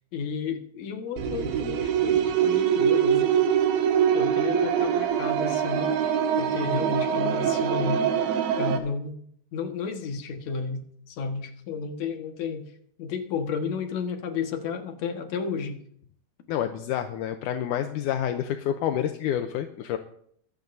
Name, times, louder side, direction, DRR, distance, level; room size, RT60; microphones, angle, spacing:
voice 1, 0.1-3.3 4.1-6.0 6.4-8.1 8.6-9.2 9.5-12.7 13.0-15.8, left 5 dB, 60° left, 5 dB, 2.4 m, -32 dB
sound 1, 1.2-8.8, right 8 dB, 80° right, 3.1 m, -24 dB
voice 2, 16.5-20.0, left 10 dB, 75° left, 7 dB, 2.0 m, -28 dB
25.0 x 14.0 x 2.7 m, 0.65 s
omnidirectional pair, 4.1 m